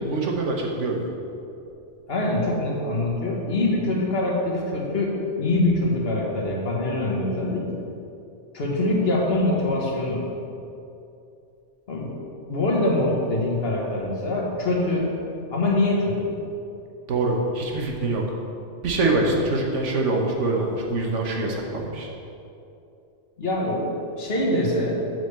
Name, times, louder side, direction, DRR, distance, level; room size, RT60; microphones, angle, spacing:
voice 1, 0.0-1.1 17.1-18.2 18.8-22.1, right 2 dB, 80° right, 0 dB, 1.4 m, -24 dB
voice 2, 2.1-7.7 8.5-10.2 11.9-12.2 12.5-15.1 15.5-16.3 23.4-25.0, left 2 dB, 55° left, -3 dB, 1.7 m, -24 dB
7.6 x 4.9 x 6.9 m, 2.7 s
omnidirectional pair, 1.2 m